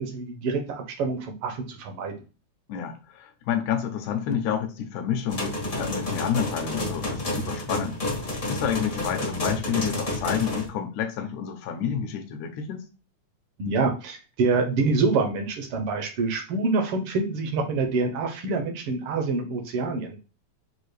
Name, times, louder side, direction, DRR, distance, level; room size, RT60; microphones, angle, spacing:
voice 1, 0.0-2.1 13.6-20.2, right 3 dB, 70° right, 1.3 m, -26 dB
voice 2, 2.7-8.0 8.4-12.8, left 8 dB, 80° left, 2.1 m, -29 dB
sound 1, 5.3-10.7, left 1 dB, 65° left, 0.5 m, -30 dB
6.4 x 2.5 x 3.2 m
omnidirectional pair, 3.4 m